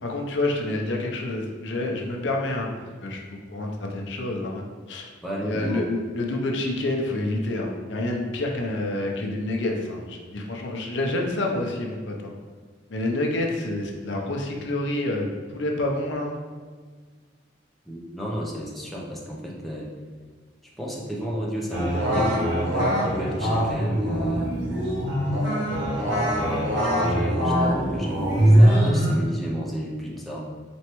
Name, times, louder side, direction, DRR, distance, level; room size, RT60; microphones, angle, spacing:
voice 1, 0.0-2.7 3.0-3.2 3.5-5.1 5.4-12.3 12.9-16.4, left 2 dB, 70° left, 1 dB, 0.6 m, -28 dB
voice 2, 5.2-5.8 17.9-19.9 20.8-24.5 26.1-30.5, equal, ahead, -4 dB, 0.5 m, -32 dB
sound 1, 21.7-29.2, equal, 75° right, 0.9 m, -22 dB
4.4 x 3.0 x 2.9 m, 1.5 s
head